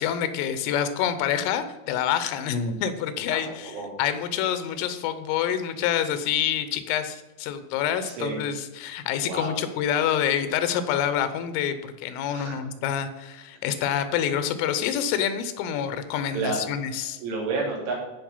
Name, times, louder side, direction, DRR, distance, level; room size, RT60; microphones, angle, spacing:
voice 1, 0.0-3.7 4.0-17.2, left 9 dB, 85° left, 11 dB, 3.4 m, -27 dB
voice 2, 3.4-3.9 8.0-8.4 9.2-9.6 12.3-12.5 16.3-16.6 17.2-17.9, right 3 dB, 75° right, -2 dB, 5.3 m, -30 dB
15.0 x 5.4 x 5.5 m, 1.1 s
omnidirectional pair, 5.7 m